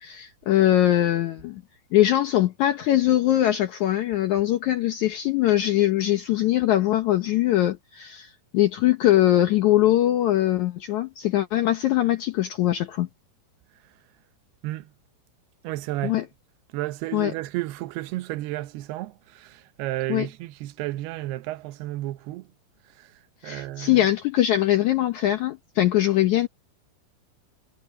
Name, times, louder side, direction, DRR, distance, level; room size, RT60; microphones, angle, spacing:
voice 1, 0.0-1.6 1.9-13.1 16.0-16.3 17.1-17.3 20.1-20.3 23.4-26.5, left 13 dB, 85° left, 1.6 m, -22 dB
voice 2, 15.6-16.2 16.7-22.5 23.4-24.1, right 16 dB, 80° right, 2.8 m, -32 dB
omnidirectional pair, 4.6 m